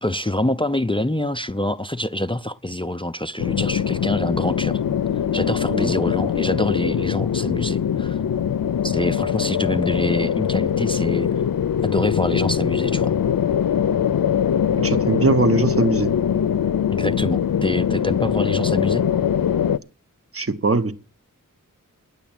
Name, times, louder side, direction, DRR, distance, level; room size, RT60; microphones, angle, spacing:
voice 1, 0.0-4.8 5.3-8.2 8.8-11.3 11.8-13.2 16.9-19.1, left 1 dB, 15° left, 0.5 m, -25 dB
sound 1, 3.4-19.8, left 8 dB, 85° left, 0.5 m, -22 dB
voice 2, 14.8-16.1 20.3-20.9, right 3 dB, 45° right, 1.0 m, -21 dB
10.0 x 7.3 x 8.9 m
wide cardioid pair, 50°, 33 cm